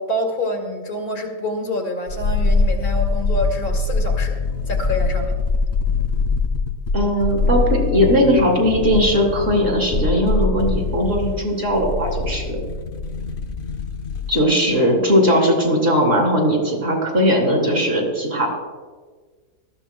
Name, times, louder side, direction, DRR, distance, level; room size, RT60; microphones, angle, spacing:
voice 1, 0.0-4.4 4.7-5.4, left 1 dB, 75° left, 1 dB, 2.3 m, -26 dB
sound 1, 2.1-14.5 14.7-14.8, left 3 dB, 55° left, 0.9 m, -23 dB
voice 2, 6.9-12.6 14.3-18.5, equal, 40° right, -1 dB, 3.3 m, -18 dB
19.0 x 13.5 x 2.3 m, 1.5 s
omnidirectional pair, 1.7 m